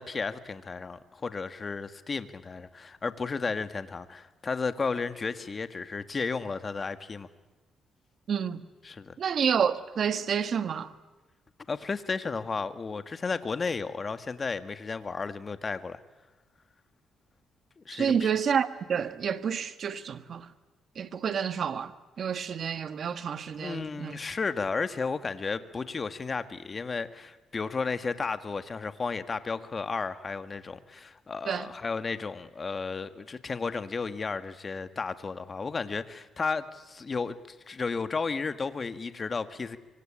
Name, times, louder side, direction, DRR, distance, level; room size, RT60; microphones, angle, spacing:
voice 1, 0.0-7.3 8.8-9.1 11.7-16.0 17.8-18.3 23.5-39.8, left 4 dB, 35° left, 1.7 m, -33 dB
voice 2, 8.3-8.6 9.2-10.9 17.9-20.5 20.9-24.2 31.4-31.7, right 7 dB, 55° right, 1.6 m, -29 dB
24.5 x 24.5 x 8.9 m
cardioid pair, 90°, 0 cm